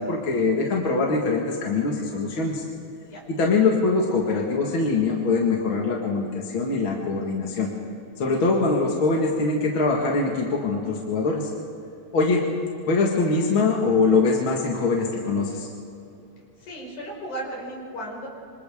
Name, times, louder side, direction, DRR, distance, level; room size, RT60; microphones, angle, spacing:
voice 1, 0.0-2.7 3.3-7.7 8.2-11.5 12.1-12.4 12.8-15.7, left 3 dB, 45° left, -1 dB, 2.3 m, -23 dB
voice 2, 16.6-18.3, right 1 dB, 75° left, -3 dB, 6.7 m, -35 dB
27.0 x 26.5 x 3.7 m, 2.7 s
omnidirectional pair, 3.5 m